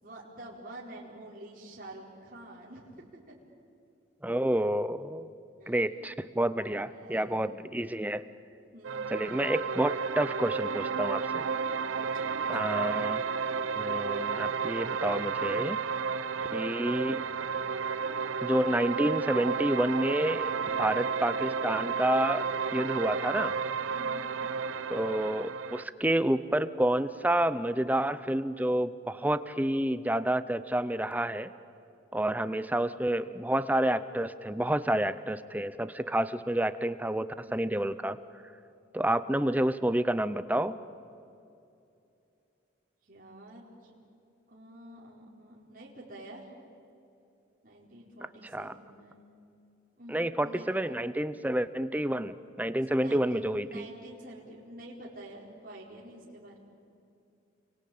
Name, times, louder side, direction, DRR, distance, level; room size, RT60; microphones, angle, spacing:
voice 1, 0.0-3.3 5.6-6.2 6.6-7.8 8.7-9.4 11.9-12.2 12.6-12.7 23.9-24.3 37.5-37.7 43.1-43.9 44.5-46.5 47.6-49.3 50.0-51.0 52.8-56.6, right 1 dB, 45° right, -4 dB, 4.5 m, -48 dB
voice 2, 4.2-5.3 5.7-8.2 9.1-11.5 12.5-13.2 13.8-15.8 16.5-17.3 18.4-20.5 20.8-22.4 22.7-23.6 24.9-31.5 32.1-38.2 38.9-40.7 48.5-48.8 50.1-53.9, right 1 dB, 10° right, 13 dB, 0.6 m, -29 dB
sound 1, 8.8-25.8, right 5 dB, 85° right, 0.8 m, -32 dB
29.5 x 23.5 x 8.6 m, 2.6 s
head